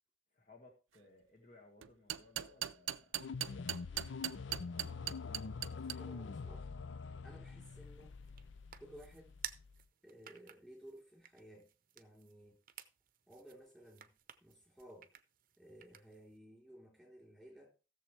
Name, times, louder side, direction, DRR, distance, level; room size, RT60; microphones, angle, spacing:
voice 1, 0.3-3.7, left 2 dB, 45° left, 1.9 m, -62 dB
sound 1, 1.8-6.0, right 12 dB, 80° right, 0.4 m, -39 dB
sound 2, 3.2-9.8, left 4 dB, 70° left, 0.5 m, -45 dB
voice 2, 5.8-6.7 7.2-8.1 8.8-9.3 10.0-11.7 11.9-12.6 13.3-14.1 14.4-15.1 15.6-17.7, right 1 dB, ahead, 3.8 m, -56 dB
sound 3, 7.7-16.4, right 10 dB, 45° right, 0.7 m, -55 dB
16.0 x 7.2 x 3.3 m
head